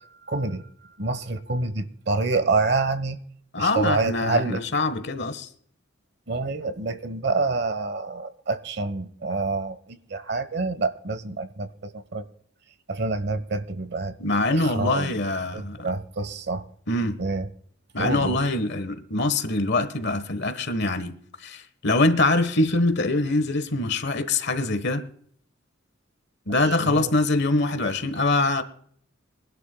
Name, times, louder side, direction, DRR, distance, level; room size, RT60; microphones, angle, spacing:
voice 1, 0.3-0.6 1.0-3.2 3.6-4.6 6.3-11.7 11.9-12.2 12.9-14.1 14.5-15.2 15.5-16.6 17.2-17.5 18.0-18.4 26.6-27.1, right 3 dB, 55° right, 1.1 m, -27 dB
voice 2, 3.5-5.5 14.2-15.9 16.9-17.2 17.9-21.1 21.4-25.1 26.5-28.6, left 2 dB, 60° left, 1.3 m, -24 dB
23.5 x 12.0 x 2.3 m
head